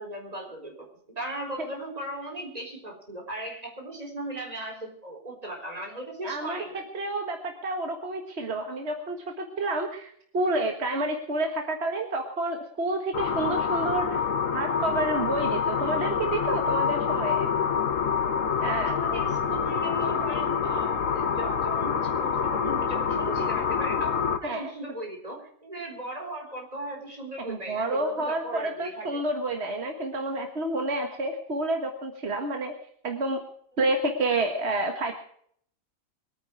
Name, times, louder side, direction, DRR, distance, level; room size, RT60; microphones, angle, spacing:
voice 1, 0.0-6.8 18.6-29.2, right 1 dB, 30° right, 1 dB, 4.4 m, -37 dB
voice 2, 6.2-14.2 14.5-17.5 18.6-18.9 24.4-24.7 27.4-32.7 33.0-33.4 33.8-35.1, right 2 dB, 55° right, 4 dB, 1.8 m, -29 dB
sound 1, 13.1-24.4, left 7 dB, 80° left, 1.5 m, -26 dB
23.0 x 9.3 x 4.8 m, 0.62 s
omnidirectional pair, 1.3 m